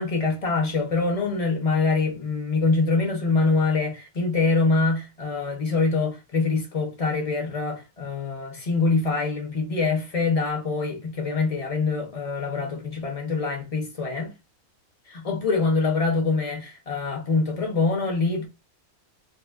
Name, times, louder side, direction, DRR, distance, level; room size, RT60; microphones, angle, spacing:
voice 1, 0.0-14.3 15.1-18.5, left 3 dB, 35° left, 0.6 m, -24 dB
3.0 x 2.4 x 2.3 m
omnidirectional pair, 1.5 m